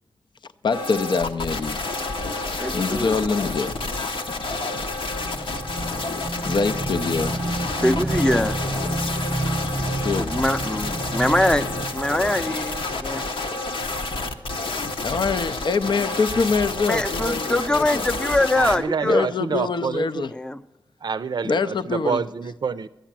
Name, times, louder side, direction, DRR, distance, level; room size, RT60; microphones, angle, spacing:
voice 1, 0.6-1.8 2.7-3.7 6.4-7.4 9.9-10.3 15.0-18.0 19.0-20.3 21.4-22.2, left 4 dB, 60° left, 11 dB, 0.6 m, -24 dB
sound 1, 0.7-18.8, left 2 dB, 75° left, 1.0 m, -29 dB
voice 2, 2.6-3.3 7.8-8.6 10.2-13.2 16.9-19.3 20.3-20.6, left 1 dB, 10° left, 11 dB, 0.6 m, -23 dB
Motorcycle / Engine, 4.8-13.3, right 2 dB, 15° right, 0.9 m, -30 dB
voice 3, 18.6-20.3 21.0-22.9, right 5 dB, 55° right, 15 dB, 0.5 m, -27 dB
12.0 x 10.0 x 7.4 m, 0.93 s
wide cardioid pair, 105°, 9 cm